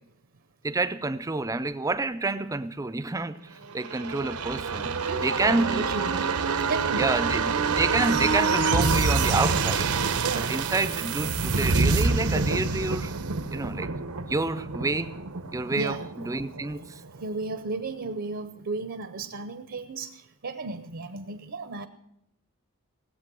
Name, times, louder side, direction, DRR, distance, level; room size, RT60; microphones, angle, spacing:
voice 1, 0.6-4.9 5.2-6.1 7.0-9.9 10.3-13.1 13.5-13.9 14.3-15.1 15.5-16.0 16.2-16.8, right 3 dB, 15° right, 0.4 m, -28 dB
sound 1, 3.7-17.2 17.5-17.6, right 4 dB, 90° right, 0.9 m, -27 dB
voice 2, 5.1-6.3 6.6-7.4 8.0-8.2 10.2-10.6 15.7-16.1 17.2-21.9, right 3 dB, 60° right, 0.7 m, -34 dB
18.5 x 8.2 x 6.1 m
head